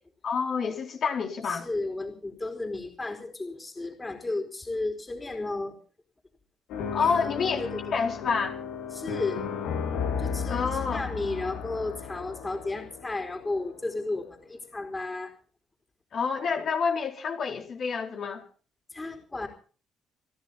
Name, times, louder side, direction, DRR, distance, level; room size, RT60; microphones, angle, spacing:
voice 1, 0.2-1.7 6.9-7.6 7.9-8.6 10.5-11.0 16.1-18.4, left 5 dB, 55° left, 4.2 m, -28 dB
voice 2, 1.5-5.7 7.0-7.3 7.6-7.8 8.9-9.4 10.2-15.3 18.9-19.5, left 2 dB, 20° left, 4.6 m, -33 dB
sound 1, 6.7-13.8, left 6 dB, 85° left, 4.7 m, -34 dB
29.0 x 11.5 x 4.2 m
cardioid pair, 85°, 0 cm